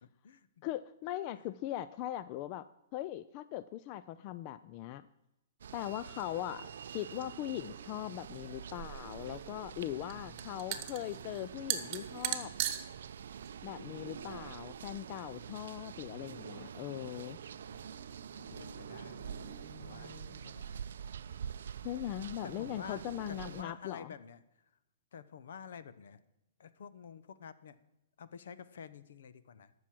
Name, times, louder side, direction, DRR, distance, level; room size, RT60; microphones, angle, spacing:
voice 1, 0.0-0.7 10.1-10.9 13.8-14.5 18.3-19.3 19.8-20.9 22.4-24.4 25.1-26.2 26.6-27.8 28.2-29.7, left 7 dB, 70° left, 15 dB, 0.8 m, -50 dB
voice 2, 0.6-2.7 2.9-5.1 5.7-12.5 13.6-17.4 21.8-24.1, left 13 dB, 35° left, 15 dB, 0.3 m, -40 dB
sound 1, 5.6-23.6, right 8 dB, 75° right, 0.5 m, -46 dB
sound 2, 8.7-14.9, right 12 dB, 35° right, 1.1 m, -40 dB
sound 3, 16.5-21.2, equal, 90° left, 2.5 m, -57 dB
13.0 x 6.3 x 7.5 m, 0.91 s
hypercardioid pair, 155°, 0 cm